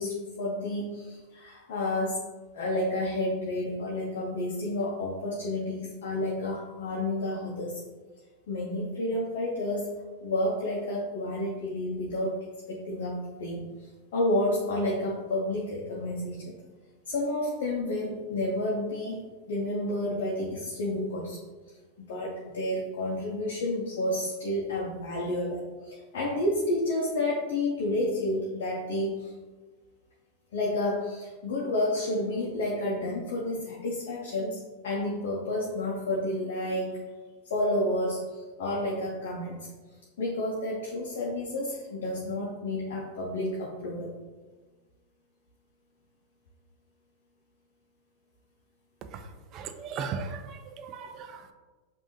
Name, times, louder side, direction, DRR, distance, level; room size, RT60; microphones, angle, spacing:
voice 1, 0.0-2.2 2.5-7.8 8.5-9.9 10.2-12.4 12.7-16.5 17.1-19.2 19.5-21.4 21.7-29.3 30.5-37.0 37.4-39.7 40.2-44.1, left 1 dB, 65° left, -3 dB, 0.7 m, -30 dB
voice 2, 49.1-51.5, right 5 dB, 40° right, 8 dB, 0.4 m, -38 dB
5.2 x 2.7 x 3.1 m, 1.3 s
hypercardioid pair, 95°, 0 cm